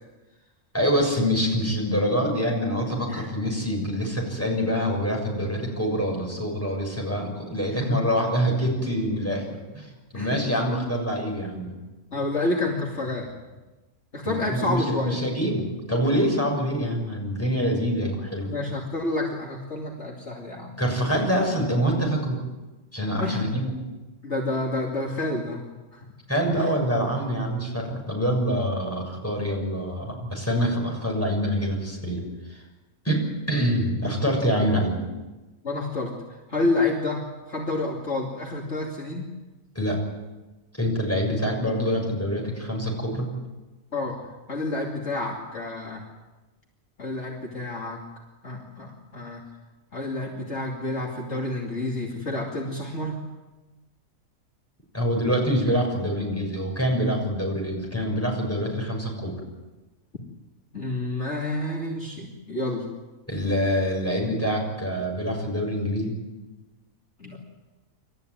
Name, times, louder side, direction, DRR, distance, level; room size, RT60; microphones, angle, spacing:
voice 1, 0.7-9.5 9.7-11.7 14.2-18.5 20.8-22.4 22.9-23.7 26.3-32.2 32.5-32.6 33.1-33.2 33.5-35.0 39.8-40.0 40.8-43.3 54.9-59.3 63.3-66.1, equal, 10° left, 0 dB, 6.9 m, -25 dB
voice 2, 7.7-8.0 10.1-10.4 12.1-13.3 14.1-15.2 18.5-20.7 23.2-23.5 24.2-25.6 25.9-26.0 26.5-26.7 35.6-39.3 43.9-44.2 44.5-46.0 47.0-48.0 48.4-49.4 49.9-53.2 60.7-62.9 67.2-67.4, left 2 dB, 50° left, -1 dB, 2.9 m, -29 dB
28.0 x 14.0 x 9.4 m, 1.1 s
omnidirectional pair, 1.5 m